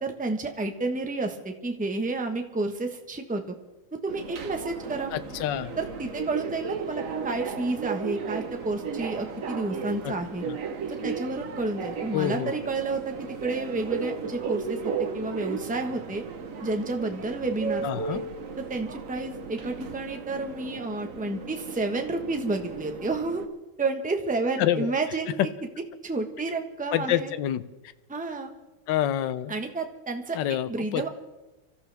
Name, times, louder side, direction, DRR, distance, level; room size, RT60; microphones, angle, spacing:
voice 1, 0.0-3.5 3.9-5.1 5.8-10.4 10.9-16.2 16.6-18.2 18.7-23.4 23.8-25.3 26.0-27.3 28.1-28.5 29.5-30.4 30.7-31.1, right 3 dB, 5° right, 4 dB, 0.9 m, -30 dB
Subway metro underground, 4.1-23.5, right 5 dB, 50° right, 1.2 m, -35 dB
voice 2, 5.1-5.7 10.0-10.1 10.5-10.6 12.1-12.5 17.8-18.2 24.6-24.9 25.4-25.5 26.9-27.6 28.9-29.5 30.3-31.0, left 12 dB, 70° left, 12 dB, 1.3 m, -27 dB
25.5 x 14.0 x 3.5 m, 1.0 s
omnidirectional pair, 2.3 m